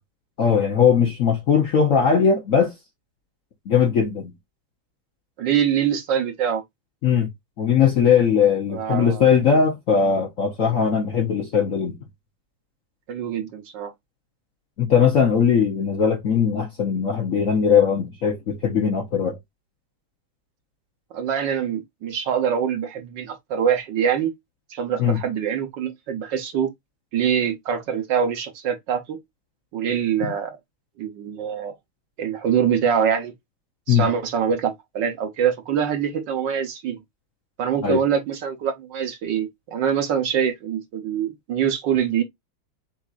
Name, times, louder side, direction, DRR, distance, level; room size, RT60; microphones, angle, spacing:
voice 1, 0.4-2.7 3.7-4.3 7.0-7.3 7.6-12.0 14.8-19.4 25.0-25.2 33.9-34.0 37.8-38.0, left 7 dB, 55° left, 1.0 m, -19 dB
voice 2, 5.4-6.6 8.7-9.2 13.1-13.9 21.1-24.3 24.7-26.7 27.1-29.2 29.7-30.6 31.0-31.7 32.2-33.3 33.9-37.0 37.6-42.2, right 8 dB, 65° right, 1.5 m, -24 dB
7.1 x 2.7 x 2.4 m
omnidirectional pair, 2.2 m